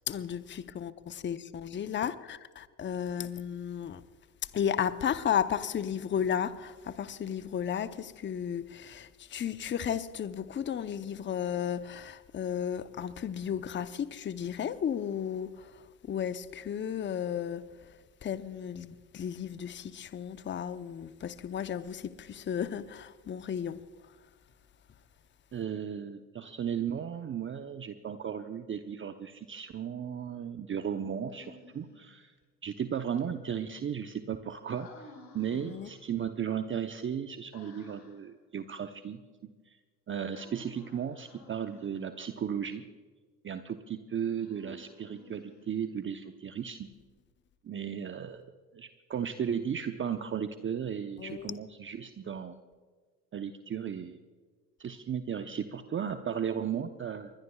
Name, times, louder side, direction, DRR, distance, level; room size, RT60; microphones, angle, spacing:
voice 1, 0.1-4.0 4.4-18.0 18.2-23.8 35.6-35.9 51.2-51.6, left 8 dB, 25° left, 0.8 m, -34 dB
voice 2, 25.5-32.3 32.6-39.8 40.1-42.9 43.4-46.9 47.6-52.5 53.3-54.2 54.8-57.3, right 8 dB, 25° right, 0.9 m, -35 dB
Human voice, 31.3-32.2 34.7-36.0 37.5-38.3 40.3-42.1 44.3-46.0, left 1 dB, 80° left, 5.7 m, -54 dB
24.5 x 20.5 x 2.4 m
hypercardioid pair, 75°, 49 cm